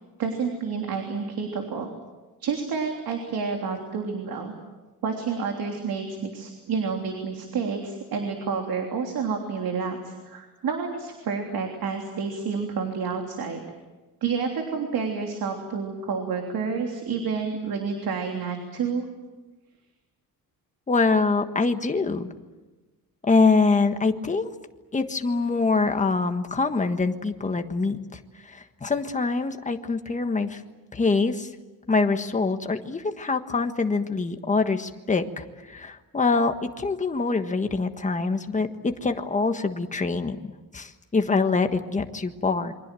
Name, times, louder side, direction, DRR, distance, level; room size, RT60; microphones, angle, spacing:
voice 1, 0.2-1.9 2.4-4.5 5.0-13.6 14.2-19.0, right 5 dB, 85° right, 3 dB, 3.3 m, -29 dB
voice 2, 20.9-22.3 23.3-24.5 24.9-30.6 30.9-31.5 31.9-40.4 40.7-42.7, left 4 dB, 20° left, 6 dB, 1.5 m, -24 dB
28.5 x 24.0 x 7.7 m, 1.2 s
wide cardioid pair, 155°, 35 cm